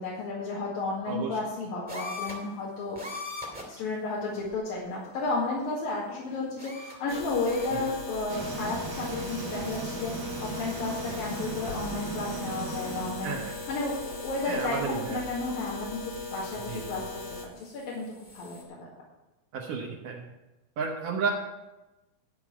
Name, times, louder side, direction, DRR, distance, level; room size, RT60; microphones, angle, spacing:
voice 1, 0.0-3.0 3.7-13.4 13.7-17.0 17.6-18.9, left 3 dB, 75° left, -5 dB, 3.6 m, -33 dB
voice 2, 1.1-1.4 7.7-7.8 13.2-13.5 14.4-15.2 16.6-17.1 19.5-20.2 20.8-21.3, right 5 dB, 70° right, -2 dB, 2.9 m, -32 dB
sound 1, 1.9-2.6 2.9-3.8 4.4-4.5 6.6-7.1 7.4-8.0 9.6-9.9 10.2-14.8 16.2-16.9 17.4-18.6, left 3 dB, 5° right, 2.0 m, -44 dB
sound 2, 7.1-17.5, left 3 dB, 50° left, 1.2 m, -39 dB
sound 3, 8.3-13.3, right 3 dB, 55° right, 1.6 m, -37 dB
12.5 x 5.7 x 8.4 m, 1.0 s
omnidirectional pair, 4.1 m